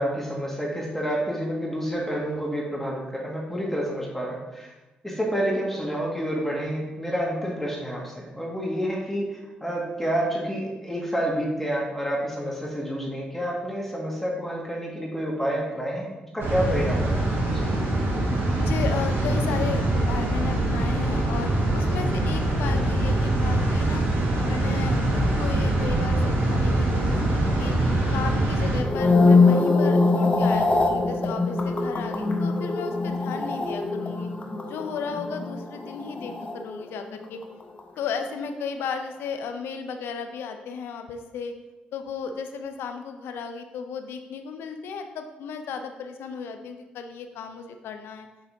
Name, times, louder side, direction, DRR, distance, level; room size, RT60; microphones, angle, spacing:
voice 1, 0.0-4.7 5.0-17.2 17.5-17.7, equal, 10° left, -3 dB, 1.9 m, -29 dB
sound 1, 16.4-28.8, right 1 dB, 65° right, 1.3 m, -23 dB
voice 2, 18.6-24.1 24.5-27.8 28.1-34.3 34.7-37.4 38.0-41.5 41.9-48.3, left 6 dB, 75° left, 6 dB, 0.6 m, -34 dB
sound 2, 28.8-37.2 37.4-37.8, left 3 dB, 30° left, 1.1 m, -23 dB
6.6 x 5.7 x 2.8 m, 1.1 s
hypercardioid pair, 45°, 4 cm